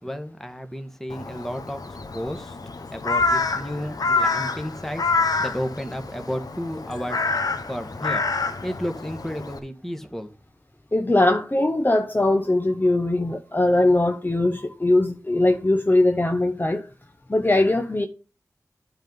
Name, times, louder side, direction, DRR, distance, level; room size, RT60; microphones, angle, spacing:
voice 1, 0.0-2.6 2.9-10.3, equal, 5° left, 1.5 m, -33 dB
Crow, 1.1-9.6, left 3 dB, 70° left, 1.0 m, -27 dB
voice 2, 10.9-16.8 17.3-18.1, left 2 dB, 30° left, 0.9 m, -20 dB
8.9 x 4.0 x 7.1 m
wide cardioid pair, 50°, 7 cm